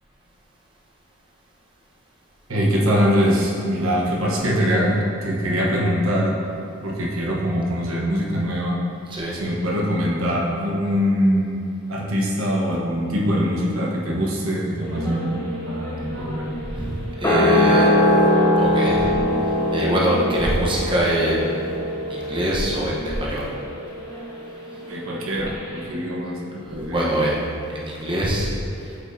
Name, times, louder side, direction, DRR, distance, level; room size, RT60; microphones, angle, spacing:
voice 1, 2.5-6.4 6.8-8.8 9.3-11.6 11.9-15.4 15.7-16.6 17.4-17.8 24.9-27.3, equal, 80° right, -3 dB, 1.1 m, -23 dB
voice 2, 9.1-9.4 16.6-17.9 18.6-19.2 19.5-21.8 22.1-23.5 26.6-29.0, equal, 25° right, -4 dB, 0.9 m, -24 dB
sound 1, 14.8-25.2 25.5-25.6, equal, 15° left, 0.8 m, -22 dB
8.0 x 5.4 x 2.7 m, 2.5 s
head